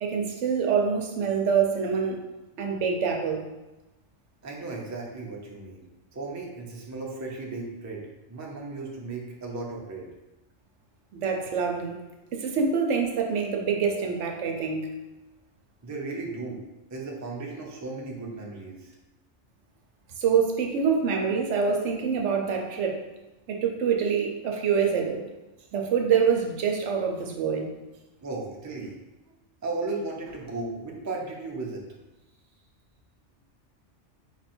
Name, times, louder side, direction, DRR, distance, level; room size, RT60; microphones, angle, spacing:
voice 1, 0.0-2.2 2.6-3.4 11.1-12.0 12.3-14.9 20.2-23.0 23.5-25.2 25.7-27.7, right 6 dB, 75° right, 2 dB, 1.0 m, -25 dB
voice 2, 4.4-5.9 6.1-10.1 15.8-16.6 16.9-18.9 28.2-29.0 29.3-29.4 29.6-31.9, right 3 dB, 20° right, -1 dB, 0.5 m, -35 dB
4.8 x 2.5 x 4.3 m, 1.0 s
omnidirectional pair, 1.3 m